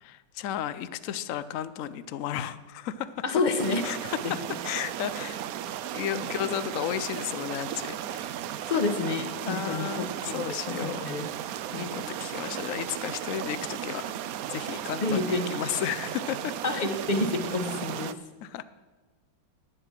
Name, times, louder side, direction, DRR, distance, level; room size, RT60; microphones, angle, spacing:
voice 1, 0.0-3.2 3.8-4.4 4.6-5.4 5.9-8.4 9.5-11.0 11.7-14.0 14.5-16.5 18.4-18.6, left 11 dB, 90° left, 14 dB, 0.7 m, -33 dB
voice 2, 3.2-3.8 4.2-4.4 8.7-10.4 10.7-11.3 11.7-12.0 15.0-15.6 16.6-18.2, left 3 dB, 30° left, 7 dB, 0.9 m, -29 dB
sound 1, 3.6-18.1, right 11 dB, 75° right, 0.8 m, -35 dB
11.5 x 9.8 x 7.3 m, 1.3 s
omnidirectional pair, 2.1 m